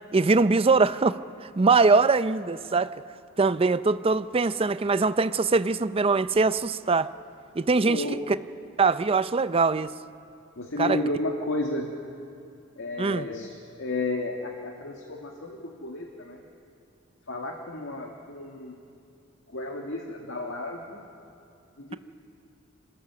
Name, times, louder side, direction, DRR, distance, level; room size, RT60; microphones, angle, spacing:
voice 1, 0.1-2.9 3.4-7.1 7.6-8.0 8.8-9.9 10.8-11.0 13.0-13.3, right 4 dB, 30° right, 14 dB, 0.5 m, -22 dB
voice 2, 7.8-8.3 10.6-11.9 12.8-16.4 17.3-18.8 19.5-21.0 21.8-22.0, left 2 dB, 75° left, 1 dB, 1.8 m, -32 dB
27.5 x 17.0 x 6.8 m, 2.5 s
head